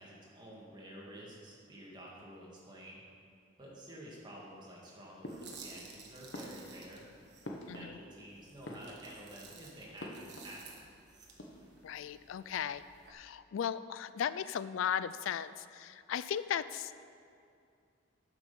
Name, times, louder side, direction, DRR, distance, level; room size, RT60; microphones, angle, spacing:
voice 1, 0.0-3.0 3.6-7.0 7.7-10.8, right 1 dB, 20° right, -5 dB, 2.1 m, -50 dB
sound 1, 5.2-5.9 6.3-8.3 8.5-9.4 10.0-11.0 11.2-11.8, left 1 dB, 60° left, 1.2 m, -47 dB
sound 2, 5.3-7.8 8.3-13.1, right 5 dB, 55° right, 1.4 m, -55 dB
voice 2, 7.7-8.0 11.8-12.8 13.1-16.9, left 8 dB, 85° left, 15 dB, 0.3 m, -36 dB
10.0 x 6.1 x 6.9 m, 2.4 s
head